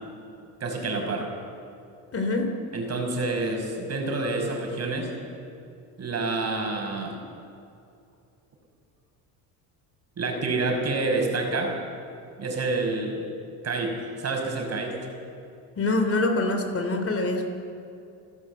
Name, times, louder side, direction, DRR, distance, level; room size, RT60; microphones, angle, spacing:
voice 1, 0.6-1.3 2.7-5.1 6.0-7.2 10.2-11.7 12.4-13.3 13.6-15.0, right 3 dB, 40° right, 2 dB, 5.6 m, -28 dB
voice 2, 2.1-2.5 15.8-17.5, left 2 dB, 35° left, 5 dB, 3.4 m, -25 dB
29.0 x 14.5 x 7.9 m, 2.6 s
cardioid pair, 105°, 40 cm